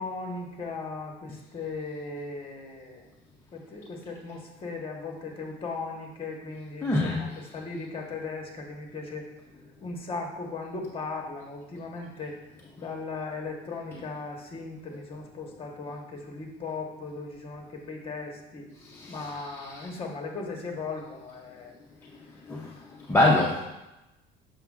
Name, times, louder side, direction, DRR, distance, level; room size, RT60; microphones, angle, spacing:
voice 1, 0.0-3.1 3.5-9.3 9.8-12.4 12.8-18.7 19.1-21.7 22.6-23.0, left 3 dB, 30° left, 1 dB, 1.1 m, -37 dB
voice 2, 6.8-7.2 18.9-19.2 22.5-22.7 23.1-23.6, left 2 dB, 10° left, -3 dB, 0.5 m, -23 dB
6.8 x 6.0 x 2.4 m, 0.99 s
cardioid pair, 140°, 20 cm